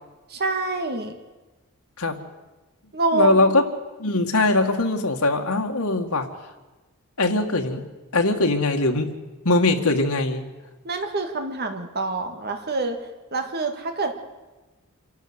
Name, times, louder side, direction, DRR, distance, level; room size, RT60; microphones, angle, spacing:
voice 1, 0.3-1.1 2.9-3.4 10.8-13.0 13.3-14.1, right 3 dB, 45° right, 5 dB, 2.0 m, -26 dB
voice 2, 3.1-3.6 4.0-6.3 7.2-7.8 8.1-9.1 9.5-10.4, left 2 dB, 90° left, 3 dB, 2.0 m, -21 dB
27.5 x 11.5 x 8.1 m, 1.2 s
head